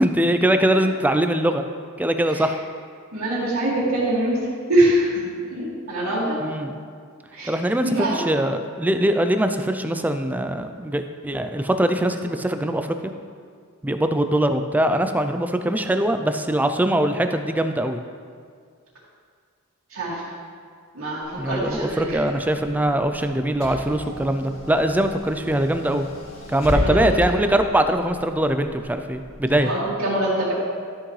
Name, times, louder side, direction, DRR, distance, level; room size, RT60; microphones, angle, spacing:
voice 1, 0.0-1.6 2.0-2.6 6.4-6.7 7.5-13.1 13.8-18.0 21.3-26.1 26.5-29.7, right 1 dB, 10° right, 7 dB, 0.4 m, -22 dB
voice 2, 3.1-4.4 4.7-5.2 5.5-6.4 7.3-7.5 7.8-8.2 19.9-20.3 20.9-22.2 26.7-27.1 29.6-30.5, right 1 dB, 80° right, -11 dB, 2.3 m, -23 dB
Car / Engine, 21.2-29.5, equal, 70° left, 2.0 m, -33 dB
12.5 x 6.1 x 3.2 m, 2.1 s
head